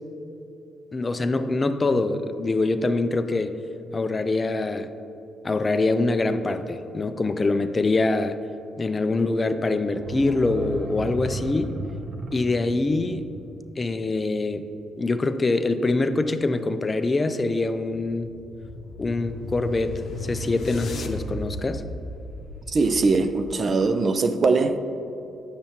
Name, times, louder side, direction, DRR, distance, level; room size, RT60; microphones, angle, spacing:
voice 1, 0.9-3.5 3.9-4.9 5.4-8.4 8.8-11.7 12.3-13.3 13.8-14.6 15.0-18.3 19.0-21.8, left 2 dB, 25° left, 0.4 m, -24 dB
sound 1, 10.0-14.7 15.0-15.1, right 2 dB, 55° right, 0.8 m, -35 dB
sound 2, 18.2-23.7, left 2 dB, 65° left, 0.7 m, -36 dB
voice 2, 22.7-24.8, right 3 dB, 40° right, 0.4 m, -21 dB
8.9 x 6.9 x 2.8 m
cardioid pair, 90°, 0 cm